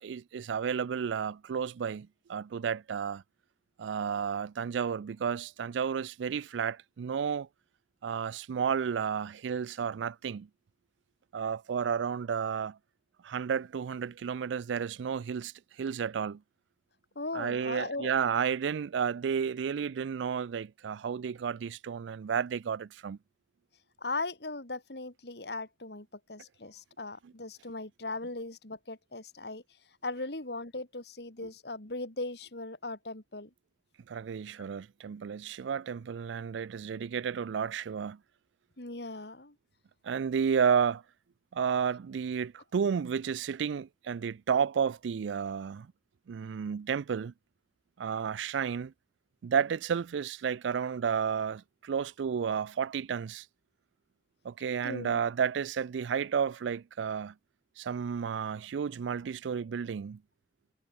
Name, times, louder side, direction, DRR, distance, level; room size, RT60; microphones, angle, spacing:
voice 1, 0.0-3.2 3.8-7.5 8.0-10.5 11.3-12.8 13.2-15.5 15.8-16.4 17.3-23.2 34.1-38.2 40.0-41.0 41.5-45.9 46.3-47.3 48.0-48.9 49.4-53.4 54.4-57.3 57.8-60.2, right 7 dB, 90° right, 0.4 m, -32 dB
voice 2, 17.1-18.1 24.0-29.6 30.0-33.5 38.8-39.5 54.8-55.2, left 2 dB, 65° left, 2.8 m, -38 dB
head